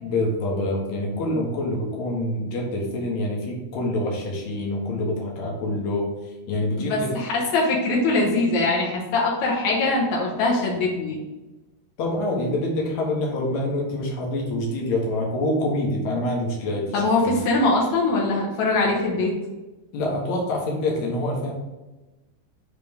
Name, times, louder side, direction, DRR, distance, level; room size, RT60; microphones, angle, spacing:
voice 1, 0.0-6.1 6.5-7.1 12.0-17.4 19.9-21.5, left 1 dB, 70° left, -1 dB, 1.8 m, -26 dB
voice 2, 6.8-11.2 16.9-19.3, left 2 dB, 90° left, -2 dB, 1.6 m, -22 dB
7.6 x 3.5 x 5.0 m, 1.1 s
omnidirectional pair, 5.1 m